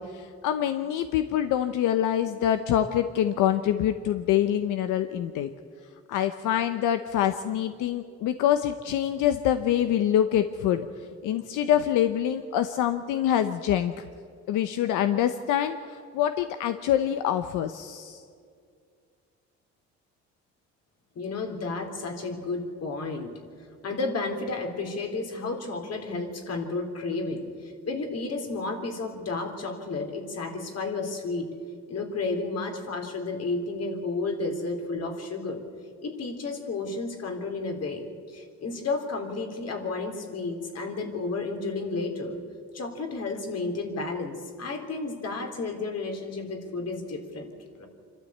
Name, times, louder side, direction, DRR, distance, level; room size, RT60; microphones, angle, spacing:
voice 1, 0.0-5.5 6.1-10.9 11.2-14.0 14.5-18.2, left 10 dB, 90° left, 9 dB, 0.9 m, -25 dB
voice 2, 21.2-23.3 23.8-31.5 31.9-35.6 36.0-42.4 42.7-47.9, left 3 dB, 55° left, 4 dB, 3.6 m, -32 dB
26.0 x 13.0 x 8.6 m, 2.2 s
cardioid pair, 90°, 30 cm